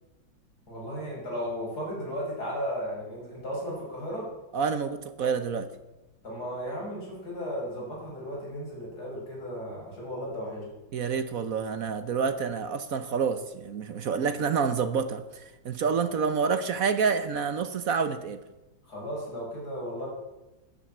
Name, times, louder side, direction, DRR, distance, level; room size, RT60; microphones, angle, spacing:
voice 1, 0.7-4.2 6.2-10.6 18.8-20.1, equal, 50° left, 6.3 m, -35 dB
voice 2, 4.5-5.7 10.9-18.4, right 6 dB, 55° right, 1.0 m, -28 dB
12.5 x 11.0 x 8.7 m
omnidirectional pair, 2.1 m